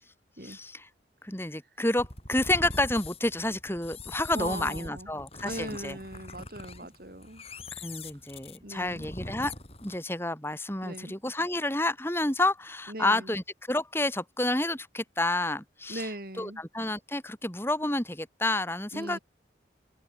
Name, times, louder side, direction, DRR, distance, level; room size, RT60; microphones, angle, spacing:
voice 1, 0.4-0.9 1.2-6.0 7.8-9.5 9.8-16.1 16.4-19.2, left 1 dB, 15° left, 4.4 m, -30 dB
sound 1, 2.0-10.0, left 2 dB, 35° left, 7.6 m, -42 dB
voice 2, 4.3-5.1 5.4-7.4 8.6-9.1 10.8-11.1 12.9-13.4 15.9-16.6 18.9-19.2, right 1 dB, 50° right, 7.3 m, -39 dB
open air
head